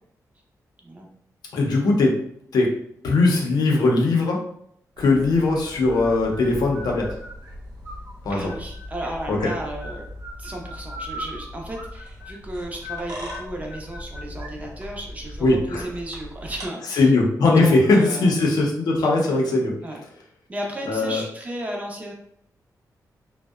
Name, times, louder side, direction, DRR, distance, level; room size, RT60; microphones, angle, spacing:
voice 1, 1.5-2.1 2.5-2.7 3.0-4.4 5.0-7.1 8.2-8.5 9.3-9.5 15.4-15.9 16.9-19.7 20.9-21.2, left 3 dB, 85° left, -1 dB, 0.6 m, -19 dB
sound 1, 5.0-16.7, equal, 90° right, 0.7 m, -38 dB
voice 2, 8.3-10.1 10.4-17.2 17.6-18.3 19.0-19.1 19.8-20.0 20.5-22.1, right 1 dB, 25° right, 0 dB, 0.4 m, -34 dB
2.6 x 2.0 x 2.3 m, 0.69 s
wide cardioid pair, 130°, 7 cm